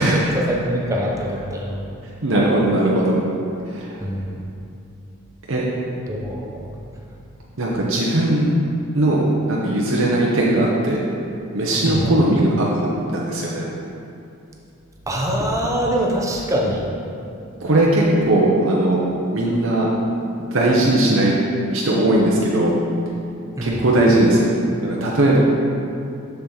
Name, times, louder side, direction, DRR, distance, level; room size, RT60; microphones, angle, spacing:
voice 1, 0.0-1.9 4.0-4.4 6.1-6.7 11.8-12.1 15.1-16.9 23.6-23.8, equal, 15° right, -2 dB, 0.8 m, -24 dB
voice 2, 2.2-3.2 3.7-4.0 5.5-5.6 7.6-8.5 8.9-11.0 11.5-13.7 17.6-19.0 19.3-19.9 20.4-21.3 21.7-22.8 23.6-24.5 24.8-25.4, right 1 dB, 65° right, -4 dB, 0.9 m, -18 dB
7.1 x 6.9 x 3.9 m, 2.6 s
head